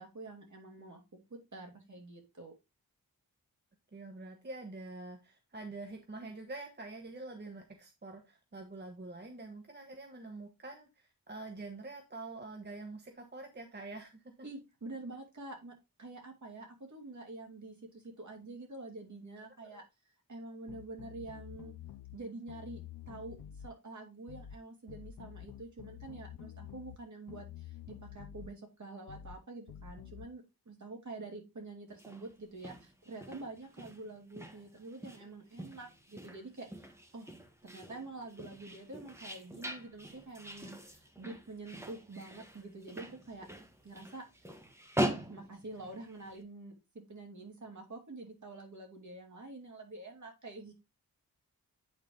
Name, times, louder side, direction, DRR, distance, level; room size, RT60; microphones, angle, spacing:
voice 1, 0.0-2.5 14.4-19.8 20.3-21.7 22.1-37.3 37.6-43.5 43.8-44.2 45.1-50.7, right 2 dB, 55° right, 1 dB, 2.7 m, -47 dB
voice 2, 3.9-14.5 19.6-19.8, right 2 dB, 30° right, 4 dB, 1.0 m, -46 dB
sound 1, 20.7-22.2 22.5-23.7 24.3-24.6 24.9-27.0 27.3-28.5 29.1-29.4 29.7-30.3, left 10 dB, 75° left, 0.5 m, -48 dB
sound 2, 31.9-46.4, right 1 dB, 5° right, 1.3 m, -42 dB
8.8 x 4.1 x 3.8 m, 0.25 s
wide cardioid pair, 105°, 36 cm